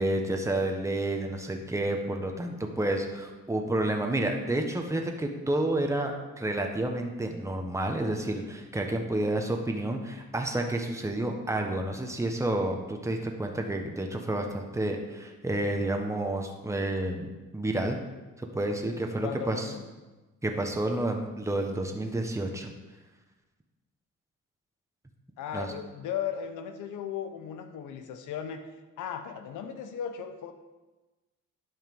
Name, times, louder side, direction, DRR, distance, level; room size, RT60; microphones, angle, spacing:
voice 1, 0.0-18.0 18.4-19.7 20.4-22.7 25.5-25.7, right 1 dB, 10° right, 3 dB, 1.4 m, -30 dB
voice 2, 19.2-19.9 25.4-28.7 29.0-30.5, left 8 dB, 80° left, 7 dB, 1.1 m, -36 dB
11.0 x 5.6 x 5.5 m, 1.2 s
cardioid pair, 90°, 30 cm